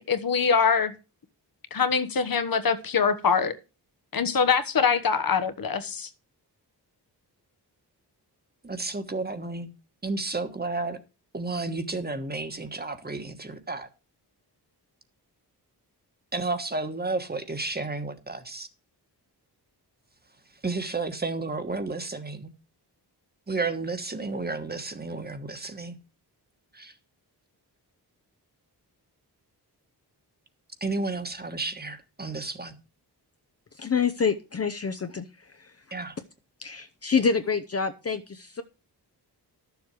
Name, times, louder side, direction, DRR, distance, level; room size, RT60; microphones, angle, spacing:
voice 1, 0.1-0.9 1.7-3.5 4.1-6.1, left 6 dB, 55° left, 1.2 m, -23 dB
voice 2, 8.6-9.7 10.0-11.0 11.3-13.9 16.3-18.7 20.6-22.5 23.5-26.0 26.7-26.9 30.8-32.8 35.9-36.2, right 3 dB, 25° right, 1.4 m, -32 dB
voice 3, 33.8-35.3 35.6-35.7 36.6-38.6, left 5 dB, 35° left, 0.8 m, -27 dB
12.0 x 7.1 x 4.9 m
wide cardioid pair, 115°, 40 cm